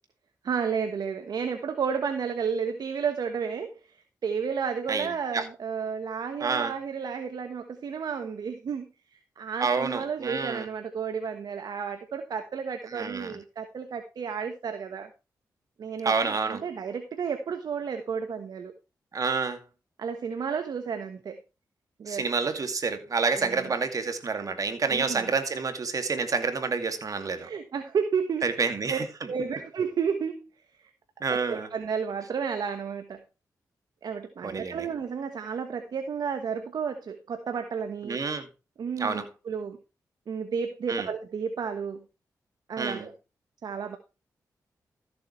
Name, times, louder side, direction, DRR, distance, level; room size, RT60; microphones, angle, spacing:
voice 1, 0.4-15.1 15.8-18.7 20.0-21.4 22.0-22.3 23.3-23.7 24.9-25.3 27.4-29.0 29.3-30.5 30.8-30.9 31.3-33.2 34.0-38.2 38.8-39.8 40.3-42.0 42.7-43.1 43.6-44.0, right 6 dB, 75° right, 1.3 m, -32 dB
voice 2, 6.4-6.7 9.6-10.7 12.9-13.4 16.0-16.6 19.1-19.6 22.1-27.5 28.4-29.0 31.2-31.7 34.4-34.8 38.0-38.5 39.0-39.3 40.9-41.1 42.8-43.1, right 4 dB, 55° right, 2.4 m, -28 dB
14.0 x 7.7 x 3.2 m
cardioid pair, 55°, 7 cm